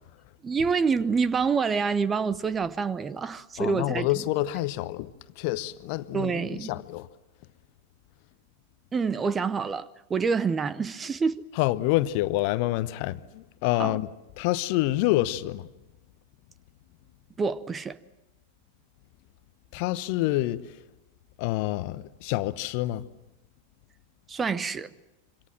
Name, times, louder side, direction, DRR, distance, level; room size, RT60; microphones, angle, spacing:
voice 1, 0.4-4.1 6.1-6.8 8.9-11.5 13.8-14.0 17.4-18.0 24.3-24.9, right 5 dB, 20° right, 0.8 m, -27 dB
voice 2, 3.6-7.1 11.6-14.1 14.4-15.6 19.7-20.6 21.4-23.0, left 17 dB, 45° left, 0.9 m, -27 dB
26.5 x 26.0 x 7.6 m
figure-of-eight pair, 90°, 0 cm